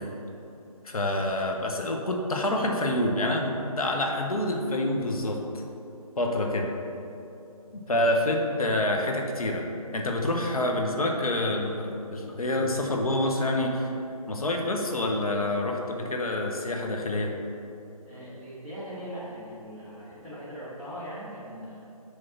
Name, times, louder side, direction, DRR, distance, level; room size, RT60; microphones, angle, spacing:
voice 1, 0.8-5.4 6.2-6.7 7.7-9.7 9.9-13.9 14.3-17.3, left 1 dB, 70° left, 1 dB, 1.0 m, -27 dB
voice 2, 18.0-21.8, equal, 10° left, -11 dB, 1.2 m, -40 dB
6.7 x 3.5 x 5.7 m, 2.8 s
figure-of-eight pair, 155°, 19 cm